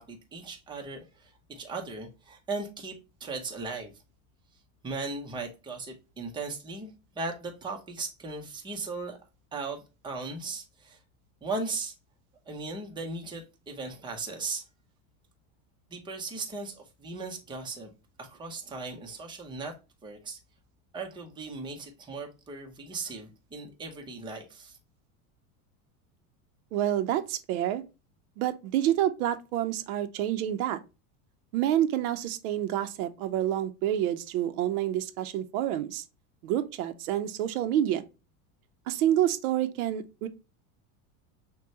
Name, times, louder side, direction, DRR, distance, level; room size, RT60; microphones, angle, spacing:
voice 1, 0.0-3.9 4.8-6.9 7.2-9.2 9.5-11.0 11.4-11.9 12.5-14.6 15.9-17.9 18.2-19.7 20.0-20.4 20.9-24.8, right 3 dB, 10° right, 0.7 m, -37 dB
voice 2, 26.7-27.8 28.4-30.8 31.5-36.0 36.4-38.0 38.9-40.3, right 11 dB, 80° right, 0.7 m, -28 dB
6.1 x 2.2 x 2.7 m
supercardioid pair, 140°, 43 cm